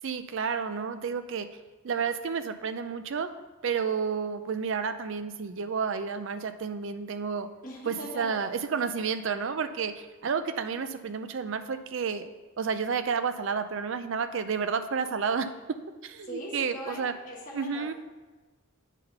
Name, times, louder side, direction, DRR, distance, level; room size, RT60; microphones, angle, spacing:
voice 1, 0.0-3.3 3.6-7.5 7.9-12.3 12.6-15.8 16.0-17.1 17.5-17.9, right 6 dB, 55° right, 10 dB, 0.4 m, -31 dB
voice 2, 7.6-8.4 16.2-17.9, equal, 35° left, -3 dB, 1.4 m, -40 dB
8.2 x 3.9 x 5.4 m, 1.2 s
head